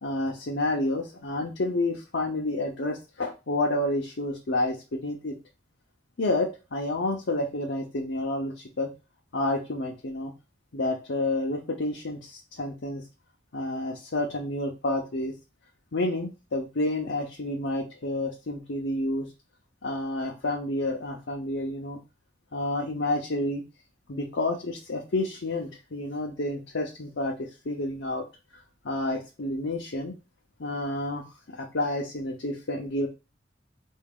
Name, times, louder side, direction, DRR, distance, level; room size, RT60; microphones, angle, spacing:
voice 1, 0.0-5.4 6.2-8.9 9.3-10.3 10.7-13.0 13.5-15.3 15.9-19.3 19.8-22.0 22.5-23.6 24.1-28.2 28.8-30.1 30.6-33.1, left 2 dB, 85° left, 0 dB, 0.7 m, -29 dB
4.8 x 2.7 x 3.6 m, 0.29 s
head